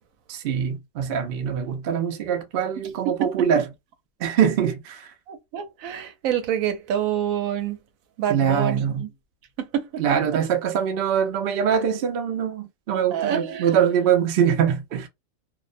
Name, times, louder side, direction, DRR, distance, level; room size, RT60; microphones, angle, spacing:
voice 1, 0.3-3.6 4.2-5.0 8.3-9.0 10.0-15.1, right 8 dB, 60° right, 0.6 m, -23 dB
voice 2, 5.3-7.8 8.2-9.1 9.6-10.4 13.1-13.7, right 10 dB, 80° right, 1.0 m, -27 dB
2.5 x 2.0 x 2.5 m
omnidirectional pair, 1.4 m